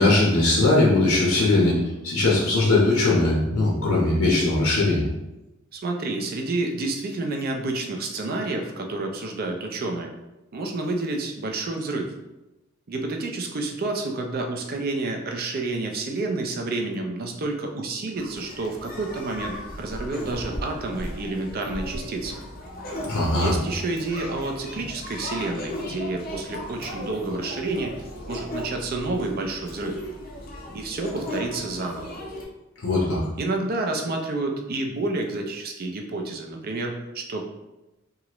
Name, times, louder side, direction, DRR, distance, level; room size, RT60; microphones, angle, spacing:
voice 1, 0.0-1.8 2.0-5.1 23.1-23.5 32.8-33.2, left 2 dB, 80° left, -3 dB, 0.7 m, -20 dB
voice 2, 5.7-10.1 10.5-12.1 12.9-22.4 23.4-27.9 28.3-30.0 30.7-32.1 33.4-37.4, right 2 dB, 45° right, 2 dB, 0.4 m, -29 dB
sound 1, 18.1-32.4, left 1 dB, 45° left, 0.6 m, -36 dB
3.0 x 2.4 x 2.9 m, 0.99 s
head